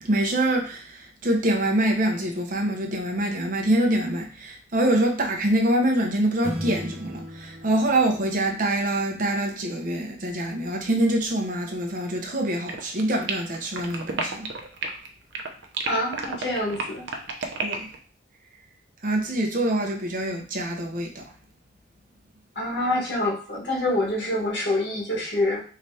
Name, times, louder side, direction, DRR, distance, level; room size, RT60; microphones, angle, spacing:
voice 1, 0.0-14.5 17.6-17.9 19.0-21.2, right 1 dB, 45° right, 2 dB, 0.9 m, -25 dB
sound 1, 6.4-9.1, equal, 15° right, 0.6 m, -36 dB
sound 2, 12.7-15.1 15.3-18.0, right 4 dB, 80° right, 0.7 m, -31 dB
voice 2, 15.9-17.0 22.5-25.6, left 1 dB, 65° left, -4 dB, 1.6 m, -26 dB
4.9 x 3.2 x 2.8 m, 0.39 s
head